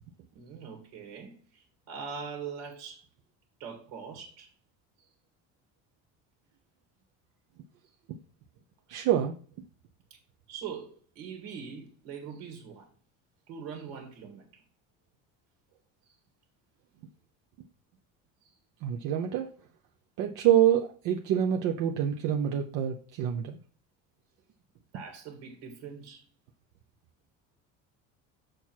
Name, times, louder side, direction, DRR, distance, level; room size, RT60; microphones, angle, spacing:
voice 1, 0.3-3.0 3.6-4.5 10.5-12.9 13.5-14.6 16.1-16.2 18.4-18.5 24.9-26.2, right 6 dB, 90° right, 2.1 m, -42 dB
voice 2, 8.9-9.4 18.8-19.5 20.2-23.6, right 10 dB, 70° right, 0.8 m, -26 dB
6.4 x 5.9 x 4.6 m
cardioid pair, 125°, 34 cm